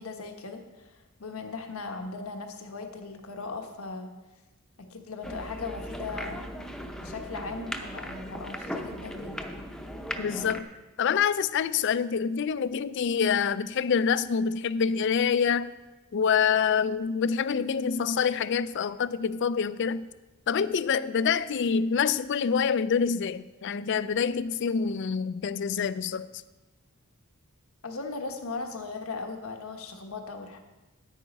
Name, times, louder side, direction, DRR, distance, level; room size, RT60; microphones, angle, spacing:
voice 1, 0.0-4.1 4.8-6.5 7.0-9.5 27.8-30.6, left 3 dB, 85° left, 1.2 m, -38 dB
sound 1, 5.2-10.6, equal, 5° left, 0.7 m, -38 dB
voice 2, 10.2-10.7 11.0-15.7 16.1-20.0 20.5-26.3, left 6 dB, 55° left, 0.4 m, -26 dB
9.3 x 9.1 x 5.3 m
head